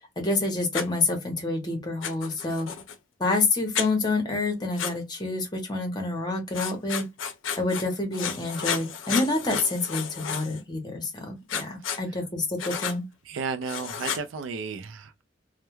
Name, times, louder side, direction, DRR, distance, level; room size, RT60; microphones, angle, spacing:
voice 1, 0.2-2.7 3.2-7.1 7.6-13.0, left 2 dB, 20° left, 0.8 m, -28 dB
Writing, 0.7-0.9 2.0-2.9 3.7-3.9 4.8-4.9 6.5-7.8 8.1-10.6 11.5-12.0 12.6-13.0 13.6-14.2, left 7 dB, 85° left, 0.5 m, -32 dB
voice 2, 13.3-15.2, right 5 dB, 80° right, 0.4 m, -33 dB
2.3 x 2.1 x 2.9 m
head